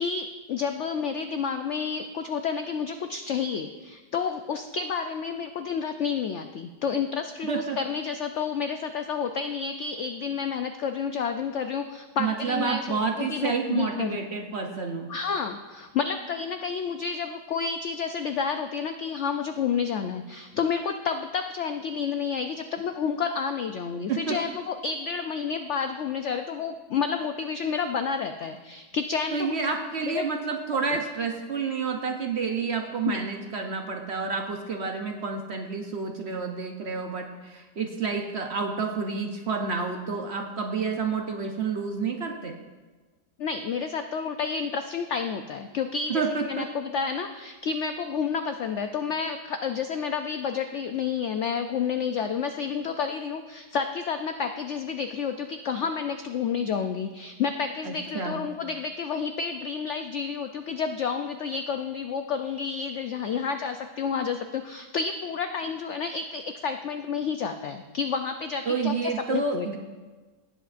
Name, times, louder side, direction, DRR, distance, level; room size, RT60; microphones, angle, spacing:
voice 1, 0.0-14.2 15.1-29.6 30.0-30.2 30.9-31.0 33.0-33.2 43.4-69.8, left 6 dB, 85° left, 7 dB, 0.6 m, -30 dB
voice 2, 7.5-7.8 12.2-15.1 24.1-24.4 29.3-42.6 46.1-46.7 57.8-58.5 68.7-69.8, right 5 dB, 50° right, 3 dB, 0.8 m, -29 dB
17.5 x 7.9 x 2.5 m, 1.3 s
omnidirectional pair, 1.8 m